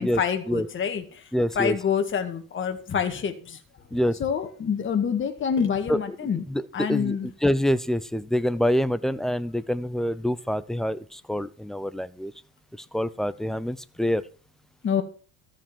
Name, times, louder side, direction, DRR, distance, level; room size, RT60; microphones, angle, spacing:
voice 1, 0.0-1.3 1.6-3.6 4.2-6.4 6.7-7.3 14.8-15.0, left 7 dB, 30° left, 7 dB, 1.9 m, -27 dB
voice 2, 1.3-1.8 3.9-4.2 5.9-6.6 6.9-7.2 7.4-12.3 12.7-14.2, equal, ahead, 16 dB, 0.4 m, -26 dB
14.0 x 5.2 x 7.2 m, 0.40 s
supercardioid pair, 110°, 39 cm